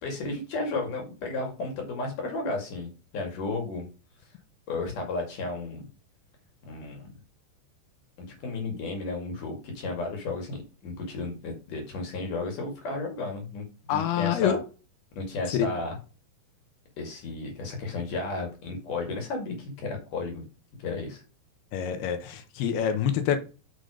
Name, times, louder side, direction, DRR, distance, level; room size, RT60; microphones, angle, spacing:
voice 1, 0.0-3.9 4.7-5.9 6.6-7.2 8.4-14.6 15.2-16.0 17.0-20.4 20.8-21.2, left 3 dB, 55° left, 3.5 m, -33 dB
voice 2, 13.9-14.6 15.6-15.7 21.7-23.4, left 9 dB, 75° left, 2.9 m, -26 dB
6.7 x 6.0 x 5.0 m
omnidirectional pair, 4.8 m